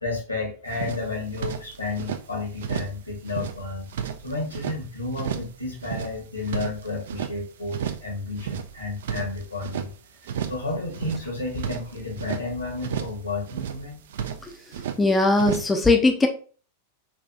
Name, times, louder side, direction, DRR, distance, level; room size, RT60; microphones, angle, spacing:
voice 1, 0.0-3.9 4.2-9.9 10.5-14.0, left 3 dB, 85° left, -1 dB, 1.3 m, -31 dB
sound 1, 0.7-2.2 2.6-3.0 3.2-4.8 5.1-5.5 5.8-7.3 7.7-8.1 8.4-9.9 10.2-10.7 10.9-12.4 12.8-13.2 13.5-15.0 15.3-15.7, right 8 dB, 60° right, 0.3 m, -32 dB
voice 2, 15.0-16.3, left 2 dB, 10° left, 3 dB, 0.4 m, -19 dB
3.4 x 2.6 x 2.4 m, 0.39 s
figure-of-eight pair, 90°, 0 cm